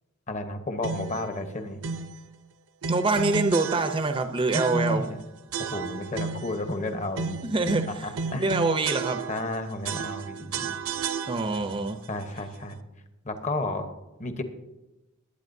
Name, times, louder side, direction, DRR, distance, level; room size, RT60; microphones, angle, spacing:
voice 1, 0.3-1.8 4.5-5.2 5.6-7.4 8.0-8.5 9.3-10.8 12.1-12.8 13.2-13.9 14.2-14.4, left 1 dB, 35° left, 8 dB, 1.0 m, -32 dB
sound 1, 0.8-1.3 1.8-2.2 2.8-4.2 4.5-5.1 5.5-6.6 7.1-9.5 9.8-11.7, right 5 dB, 75° right, 0.7 m, -33 dB
voice 2, 2.9-5.0 7.4-8.1 8.4-9.2 10.6-10.7 11.3-12.0, right 3 dB, 25° right, 7 dB, 0.6 m, -25 dB
20.0 x 8.9 x 2.7 m, 1.0 s
head